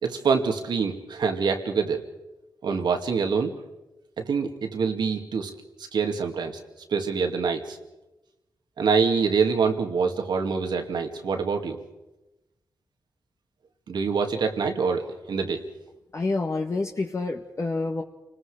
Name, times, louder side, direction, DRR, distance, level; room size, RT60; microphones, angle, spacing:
voice 1, 0.0-2.0 2.6-3.5 4.2-5.5 5.9-6.6 6.9-7.8 8.8-11.8 13.9-15.6, right 5 dB, 80° right, 5 dB, 2.4 m, -25 dB
voice 2, 16.1-18.0, left 3 dB, 40° left, 1 dB, 1.7 m, -28 dB
29.0 x 20.0 x 5.1 m, 1.0 s
cardioid pair, 60°, 7 cm